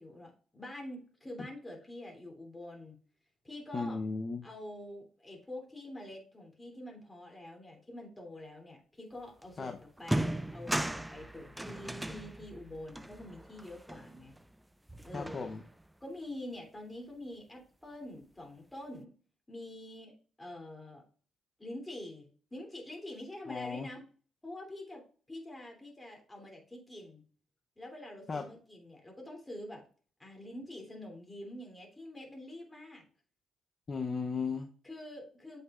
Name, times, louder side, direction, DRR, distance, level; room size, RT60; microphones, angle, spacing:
voice 1, 0.0-3.0 3.4-4.0 4.4-14.4 15.0-15.5 16.0-19.1 19.5-21.0 21.6-24.1 24.4-27.2 27.8-29.9 30.2-33.1 34.8-35.6, left 1 dB, 15° left, 1 dB, 3.0 m, -46 dB
voice 2, 3.7-4.4 9.6-9.8 15.1-15.6 23.5-23.9 28.3-28.4 33.9-34.7, left 4 dB, 35° left, 4 dB, 0.7 m, -35 dB
sound 1, 9.4-9.5 10.0-14.6 14.9-15.9, right 1 dB, 5° right, 0.4 m, -37 dB
8.0 x 5.3 x 2.5 m, 0.40 s
cardioid pair, 90°, 0 cm